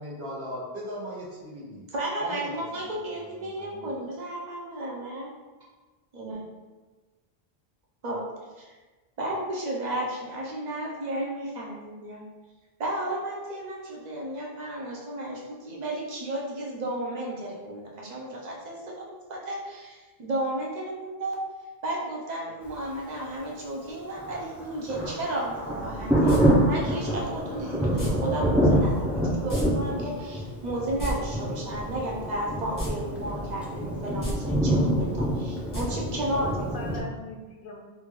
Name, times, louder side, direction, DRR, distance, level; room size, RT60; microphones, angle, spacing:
voice 1, 0.0-1.9 2.2-4.1, equal, 80° right, -7 dB, 1.4 m, -39 dB
voice 2, 1.9-5.3 6.1-6.4 8.0-8.2 8.6-8.8 9.2-12.3 12.8-21.4 21.8-26.3 26.7-36.7 37.0-37.1, right 1 dB, 45° right, -2 dB, 0.8 m, -33 dB
Thunder, 24.2-37.0, right 1 dB, ahead, 0.5 m, -26 dB
sound 1, 26.3-26.4 28.0-28.1 29.5-29.7 29.9-30.0 30.8-31.1 32.7-32.9 33.3-33.4 34.1-34.3 35.7-35.8 36.2-36.3, equal, 20° left, 0.8 m, -31 dB
voice 3, 36.1-37.8, left 1 dB, 60° left, -1 dB, 0.7 m, -40 dB
3.7 x 2.5 x 3.1 m, 1.3 s
omnidirectional pair, 1.1 m